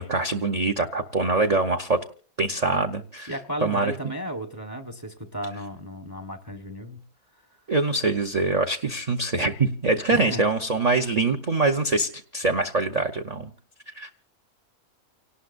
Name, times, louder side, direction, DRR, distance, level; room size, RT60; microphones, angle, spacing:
voice 1, 0.0-2.0 2.4-3.4 3.6-3.9 7.7-13.5 13.9-14.1, right 3 dB, 30° right, 7 dB, 0.8 m, -24 dB
voice 2, 3.3-7.0 10.1-10.4, equal, 15° right, 7 dB, 1.1 m, -34 dB
30.0 x 18.5 x 2.6 m, 0.40 s
omnidirectional pair, 1.6 m